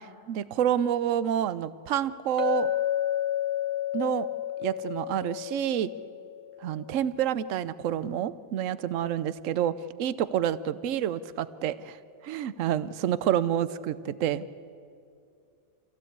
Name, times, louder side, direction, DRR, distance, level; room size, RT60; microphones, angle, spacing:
voice 1, 0.3-2.7 3.9-4.3 4.6-5.9 6.6-9.7 10.0-12.0 12.2-14.5, right 10 dB, 65° right, 16 dB, 1.0 m, -28 dB
Chink clink, 2.4-6.5, left 11 dB, 20° left, 1.6 m, -31 dB
26.5 x 16.0 x 8.6 m, 2.4 s
omnidirectional pair, 1.5 m